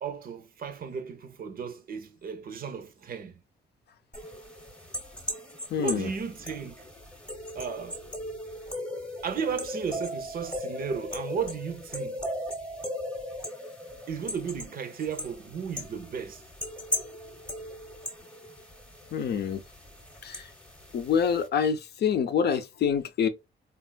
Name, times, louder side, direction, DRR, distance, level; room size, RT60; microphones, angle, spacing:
voice 1, 0.0-3.3 5.8-6.9 7.5-8.0 9.2-12.2 14.1-16.5, right 6 dB, 45° right, 0.5 m, -34 dB
sound 1, 4.1-21.5, left 1 dB, 5° left, 0.8 m, -38 dB
voice 2, 5.7-6.1 19.1-19.6 20.2-20.5 20.9-23.3, left 7 dB, 55° left, 0.5 m, -26 dB
3.4 x 2.4 x 2.2 m
cardioid pair, 90°, 20 cm